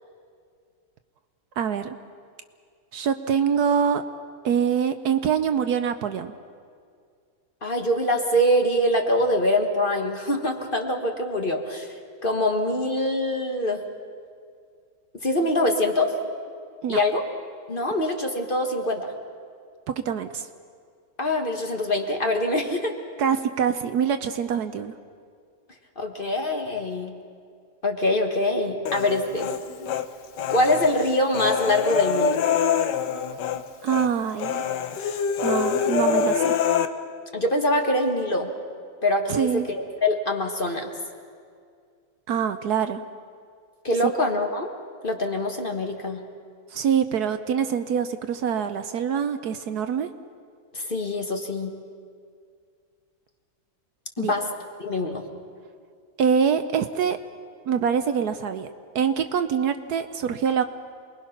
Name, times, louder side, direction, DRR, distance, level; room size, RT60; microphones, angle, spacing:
voice 1, 1.6-2.0 2.9-4.0 4.4-6.3 16.8-17.0 19.9-20.5 23.2-24.9 33.8-34.6 35.4-36.5 39.3-39.7 42.3-43.0 46.7-50.1 54.2-54.3 56.2-57.2 57.7-58.7 58.9-60.6, right 7 dB, 65° right, 9 dB, 1.2 m, -24 dB
voice 2, 7.6-11.9 12.2-13.8 15.2-16.1 16.9-17.2 17.7-19.1 21.2-22.9 26.0-27.1 27.8-29.5 30.5-32.4 37.3-38.5 39.0-39.6 40.0-40.9 43.8-44.7 45.0-46.2 50.7-51.7 54.2-54.5 54.8-55.2, left 1 dB, 30° left, 3 dB, 1.6 m, -24 dB
Human voice, 28.9-30.1 30.4-33.6 33.9-34.1 34.4-36.9, left 6 dB, 75° left, 1.6 m, -25 dB
28.0 x 21.0 x 5.9 m, 2.2 s
omnidirectional pair, 1.9 m